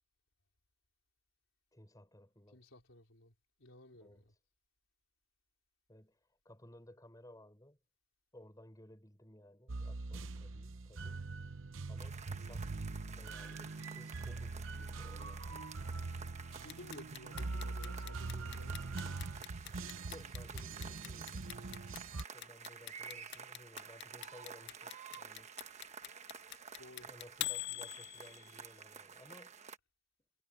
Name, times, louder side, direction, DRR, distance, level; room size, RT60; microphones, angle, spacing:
voice 1, 1.7-2.6 3.9-4.4 5.9-7.8 8.3-11.2 11.9-12.7 13.2-15.8 20.1-21.9 22.3-25.5 27.0-29.6, left 1 dB, 20° left, 4.9 m, -58 dB
voice 2, 2.5-3.3 3.6-4.3 16.5-18.8 24.6-24.7 26.8-27.1, left 1 dB, 75° left, 3.8 m, -55 dB
sound 1, 9.7-22.2, right 3 dB, 70° right, 0.8 m, -43 dB
sound 2, 12.0-29.8, right 6 dB, 35° right, 1.2 m, -52 dB
Clock, 16.7-28.7, left 17 dB, 55° left, 0.3 m, -43 dB
head